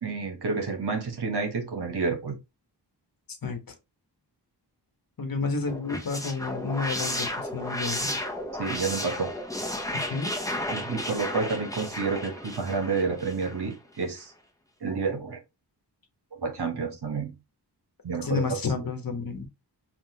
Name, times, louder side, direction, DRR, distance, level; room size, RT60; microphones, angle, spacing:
voice 1, 0.0-2.4 8.6-9.3 10.7-14.3 14.8-15.4 16.3-17.3 18.0-18.6, right 4 dB, 65° right, 1.1 m, -29 dB
voice 2, 3.3-3.6 5.2-8.1 9.9-10.5 18.2-19.5, left 4 dB, 55° left, 1.1 m, -31 dB
sound 1, 5.7-13.7, left 1 dB, 10° left, 0.8 m, -33 dB
5.6 x 2.5 x 2.8 m
wide cardioid pair, 80°, 42 cm